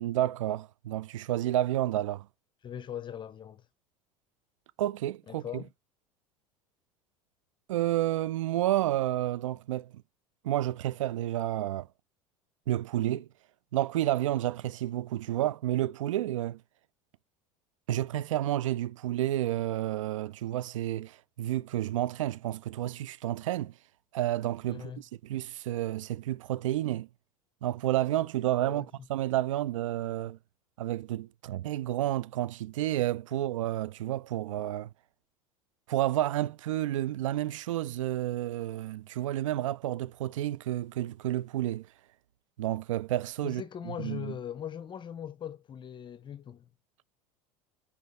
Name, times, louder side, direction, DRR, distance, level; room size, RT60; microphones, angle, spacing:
voice 1, 0.0-2.3 4.8-5.6 7.7-9.9 10.4-11.9 12.7-13.3 13.7-16.6 17.9-23.7 24.1-27.1 27.6-30.4 30.8-34.9 35.9-41.9 42.6-44.3, right 13 dB, 65° right, 0.5 m, -30 dB
voice 2, 2.6-3.7 5.3-5.7 24.7-25.0 28.6-28.9 43.4-46.7, left 9 dB, 25° left, 0.6 m, -40 dB
10.0 x 3.6 x 3.4 m
figure-of-eight pair, 70°, 18 cm